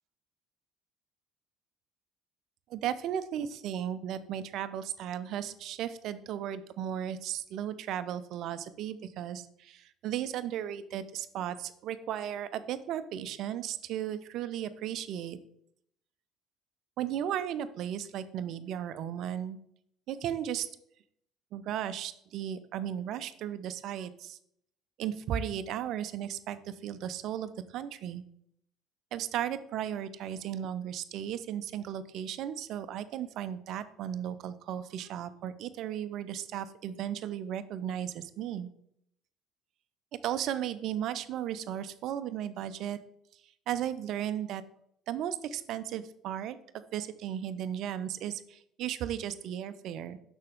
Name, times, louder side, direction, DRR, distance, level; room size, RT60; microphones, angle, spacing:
voice 1, 2.7-15.4 17.0-19.6 20.1-20.7 21.5-24.4 25.0-28.2 29.1-38.7 40.2-43.0 43.7-44.6 45.1-50.2, right 10 dB, 50° right, 13 dB, 0.5 m, -35 dB
6.5 x 6.2 x 3.6 m, 0.71 s
figure-of-eight pair, 55°, 0 cm